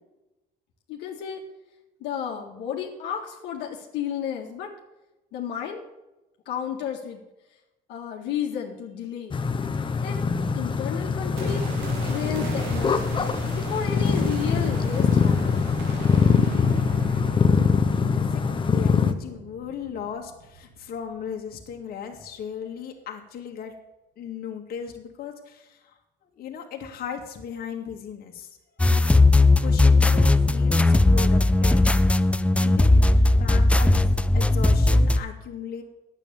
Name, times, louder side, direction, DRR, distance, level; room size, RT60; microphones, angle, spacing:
voice 1, 0.9-1.4 2.0-4.7 5.3-5.8 6.5-7.2 7.9-9.4 10.0-10.2 10.5-11.6 12.0-13.1 13.6-15.7, left 8 dB, 85° left, 0 dB, 1.9 m, -32 dB
sound 1, 9.3-19.1, left 5 dB, 30° left, 0.9 m, -23 dB
sound 2, 11.4-21.4 21.7-21.8, right 4 dB, 90° right, 2.1 m, -38 dB
voice 2, 17.9-23.7 24.2-26.0 26.4-28.5 28.8-28.9 29.4-31.9 32.6-35.8, left 7 dB, 65° left, 2 dB, 2.0 m, -37 dB
sound 3, 28.8-35.2, left 2 dB, 5° left, 0.6 m, -18 dB
10.0 x 8.3 x 7.0 m, 0.99 s
cardioid pair, 110°, 17 cm